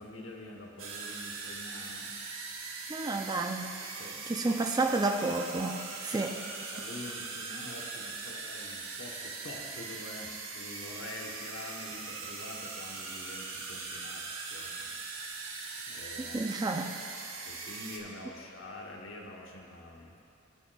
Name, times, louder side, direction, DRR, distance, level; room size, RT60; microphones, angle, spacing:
voice 1, 0.0-2.1 4.0-4.6 6.1-6.3 6.7-14.9 15.9-16.4 17.4-20.2, left 2 dB, 60° left, -1 dB, 1.0 m, -46 dB
sound 1, 0.8-18.0, right 4 dB, 65° right, 1.0 m, -41 dB
voice 2, 2.9-3.8 4.3-6.4 16.2-16.9, right 2 dB, 20° right, 4 dB, 0.4 m, -31 dB
17.5 x 6.4 x 2.3 m, 2.7 s
head